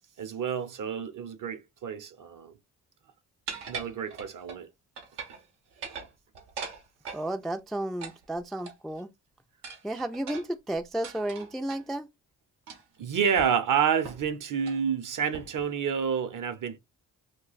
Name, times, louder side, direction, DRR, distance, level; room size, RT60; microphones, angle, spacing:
voice 1, 0.2-2.5 3.7-4.7 13.0-16.8, right 7 dB, 50° right, 0.7 m, -29 dB
sound 1, 3.5-4.6 5.0-5.4 5.7-7.3 8.0-9.0 9.6-11.8 12.7-13.0 13.4-13.5 14.0-14.3 14.6-14.8 15.3-15.7, right 5 dB, 85° right, 0.8 m, -41 dB
voice 2, 7.1-9.1 9.8-12.1, right 1 dB, ahead, 0.3 m, -32 dB
2.4 x 2.2 x 3.9 m
supercardioid pair, 50°, 40 cm